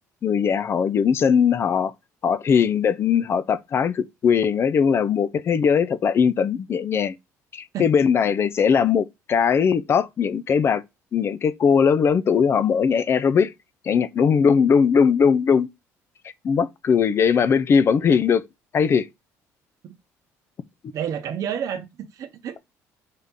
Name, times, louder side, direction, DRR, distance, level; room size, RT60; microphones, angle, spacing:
voice 1, 0.2-1.9 2.2-7.2 7.5-10.8 11.1-13.5 13.8-15.7 16.4-18.4 18.7-19.1, left 6 dB, 40° left, 0.4 m, -20 dB
voice 2, 20.9-22.6, right 8 dB, 60° right, 0.8 m, -30 dB
3.5 x 2.8 x 3.7 m
cardioid pair, 95°, 6 cm